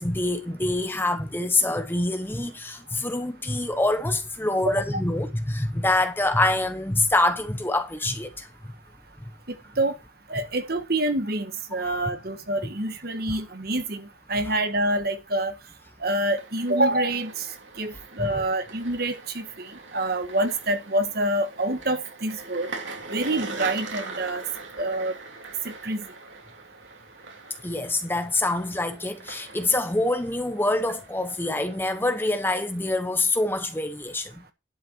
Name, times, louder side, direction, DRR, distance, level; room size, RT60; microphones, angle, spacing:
voice 1, 0.0-8.5 11.7-11.9 18.2-18.4 27.6-34.4, left 2 dB, 10° left, 1.0 m, -25 dB
voice 2, 9.5-9.9 10.3-15.5 16.0-17.4 17.8-22.7 23.1-24.4 24.8-25.1 25.6-26.0, right 1 dB, 50° right, 1.6 m, -27 dB
sound 1, 16.0-33.0, right 3 dB, 75° right, 3.1 m, -42 dB
11.0 x 8.0 x 4.5 m
head